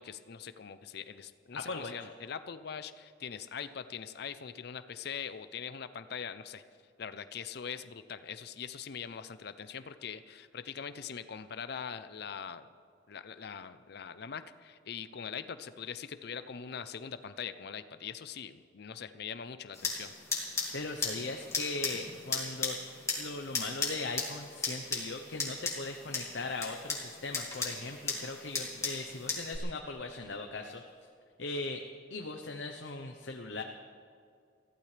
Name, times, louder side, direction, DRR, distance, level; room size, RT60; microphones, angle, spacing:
voice 1, 0.0-6.6 7.0-12.7 13.1-20.1, left 7 dB, 60° left, 12 dB, 0.6 m, -42 dB
voice 2, 1.5-2.1 20.7-22.8 23.2-30.8 31.4-31.8 32.1-33.6, left 3 dB, 80° left, 3 dB, 0.9 m, -39 dB
sound 1, 19.7-29.6, left 3 dB, 15° left, 2.7 m, -37 dB
22.5 x 15.0 x 3.3 m, 2.3 s
head